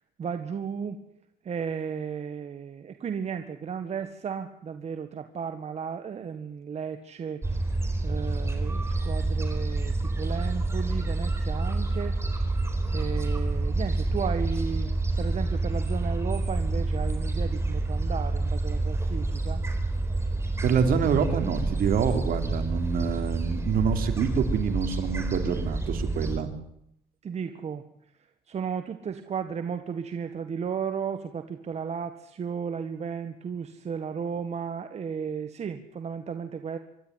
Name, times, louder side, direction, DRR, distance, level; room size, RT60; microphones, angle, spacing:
voice 1, 0.2-1.0 1.4-7.7 8.0-12.6 12.9-19.6 27.2-27.9 28.5-36.8, right 6 dB, 40° right, 8 dB, 1.7 m, -34 dB
Gull seagull, 7.4-26.4, right 2 dB, 15° right, 4.5 m, -28 dB
voice 2, 20.6-26.5, right 6 dB, 60° right, 6 dB, 3.4 m, -26 dB
26.0 x 13.0 x 9.6 m, 0.74 s
cardioid pair, 110°, 17 cm